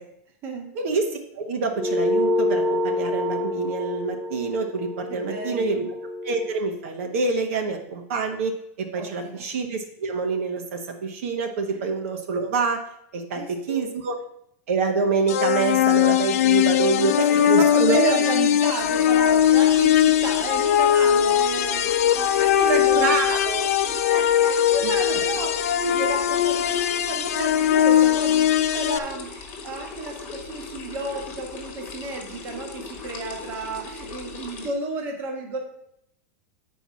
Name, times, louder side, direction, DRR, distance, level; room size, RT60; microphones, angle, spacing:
voice 1, 0.7-5.8 6.2-8.5 8.8-12.8 13.1-14.2 14.7-18.2 22.7-23.7 24.8-24.9, right 4 dB, 60° right, 3 dB, 1.2 m, -26 dB
sound 1, 1.8-6.6, left 1 dB, 5° right, 0.4 m, -27 dB
voice 2, 5.1-5.9 9.0-9.4 13.3-13.9 17.3-23.2 24.0-35.6, right 3 dB, 25° right, 2 dB, 1.3 m, -32 dB
sound 2, 15.3-29.0, left 11 dB, 70° left, 0.6 m, -20 dB
sound 3, 18.8-34.7, left 4 dB, 25° left, 1.4 m, -39 dB
8.8 x 4.6 x 5.7 m, 0.74 s
supercardioid pair, 180°, 8 cm